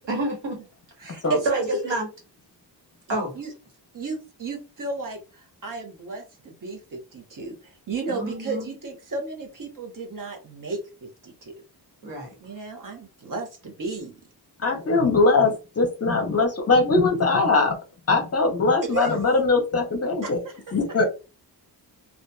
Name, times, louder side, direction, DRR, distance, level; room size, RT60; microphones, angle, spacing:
voice 1, 0.0-0.6 1.4-2.1 3.1-3.3 8.1-8.7 12.0-12.3, right 1 dB, 85° right, 0 dB, 1.3 m, -28 dB
voice 2, 1.0-2.0 3.1-3.5 3.9-11.5 12.4-14.1 18.8-19.2 20.2-20.3, right 3 dB, 45° right, 3 dB, 1.0 m, -33 dB
voice 3, 14.6-17.8 18.1-20.4 20.7-21.1, left 3 dB, 35° left, 3 dB, 0.7 m, -21 dB
2.7 x 2.4 x 2.3 m, 0.30 s
wide cardioid pair, 120°, 43 cm